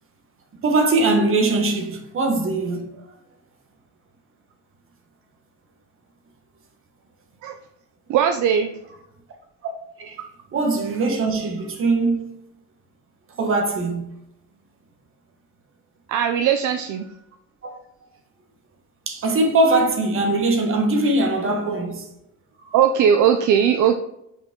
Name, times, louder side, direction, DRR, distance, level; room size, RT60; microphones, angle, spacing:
voice 1, 0.6-2.9 10.0-10.2 10.5-12.3 13.4-14.1 17.6-17.8 19.1-22.0 22.7-22.8, right 2 dB, 40° right, 1.4 m, -21 dB
voice 2, 8.1-8.7 16.1-17.1 22.7-24.0, right 8 dB, 65° right, 0.6 m, -18 dB
6.3 x 5.0 x 3.7 m
cardioid pair, 150°, 32 cm